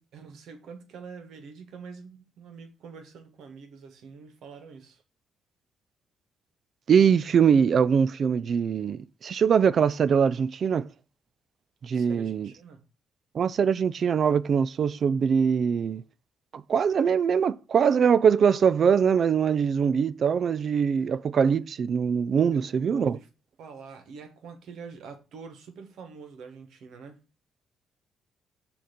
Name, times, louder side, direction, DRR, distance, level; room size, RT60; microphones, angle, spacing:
voice 1, 0.1-5.0 11.9-12.8 22.5-23.3 23.6-27.2, right 5 dB, 80° right, 1.3 m, -45 dB
voice 2, 6.9-10.9 11.8-12.5 13.3-16.0 16.5-23.2, right 7 dB, 55° right, 0.4 m, -22 dB
6.5 x 2.9 x 5.1 m
cardioid pair, 90°, 0 cm